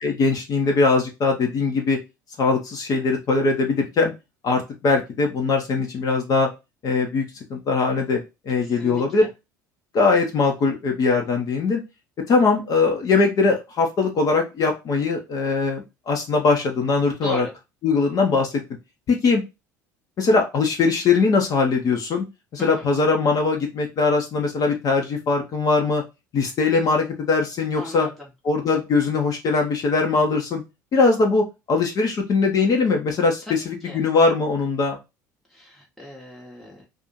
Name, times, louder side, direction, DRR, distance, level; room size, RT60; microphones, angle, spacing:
voice 1, 0.0-2.0 2.4-4.1 4.4-6.5 6.8-7.2 7.5-9.3 9.9-11.8 12.3-17.5 17.8-18.5 19.1-19.4 20.2-22.2 22.5-26.0 26.3-28.1 28.4-30.6 30.9-35.0, left 4 dB, 40° left, 2 dB, 0.8 m, -21 dB
voice 2, 8.6-9.0 17.2-17.5 22.6-22.8 27.7-28.3 33.4-34.0 35.5-36.8, left 1 dB, ahead, -3 dB, 0.9 m, -37 dB
2.6 x 2.5 x 4.2 m, 0.25 s
figure-of-eight pair, 65°, 10 cm